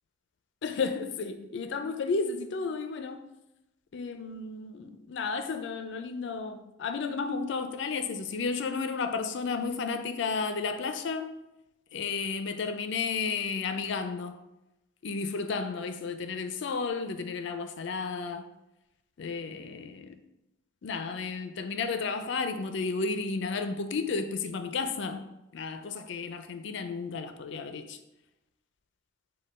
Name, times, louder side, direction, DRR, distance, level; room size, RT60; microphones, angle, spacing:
voice 1, 0.6-3.3 3.9-11.3 11.9-14.4 15.0-18.5 19.2-20.1 20.8-25.2 25.5-28.0, left 4 dB, 65° left, 8 dB, 0.4 m, -32 dB
5.3 x 2.2 x 4.1 m, 0.92 s
head